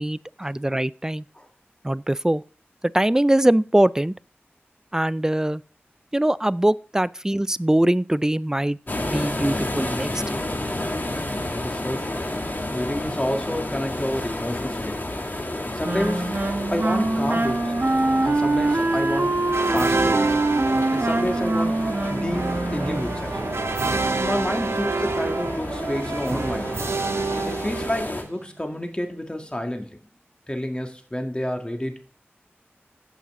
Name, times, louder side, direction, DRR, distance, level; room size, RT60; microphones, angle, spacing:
voice 1, 0.0-1.2 1.8-2.4 2.8-4.1 4.9-5.6 6.1-10.4, right 1 dB, 15° right, 0.4 m, -22 dB
sound 1, 8.9-28.2, left 1 dB, 50° left, 2.1 m, -31 dB
voice 2, 11.3-12.3 12.7-15.0 15.7-16.4 16.7-17.7 18.2-20.4 20.9-23.4 24.1-26.8 27.5-30.0 30.5-32.0, left 1 dB, 25° left, 1.8 m, -29 dB
Wind instrument woodwind instrument, 15.8-23.2, right 2 dB, 55° right, 1.1 m, -24 dB
sound 2, 19.5-28.4, right 3 dB, 85° right, 0.7 m, -28 dB
15.5 x 5.7 x 3.7 m
wide cardioid pair, 50°, 4 cm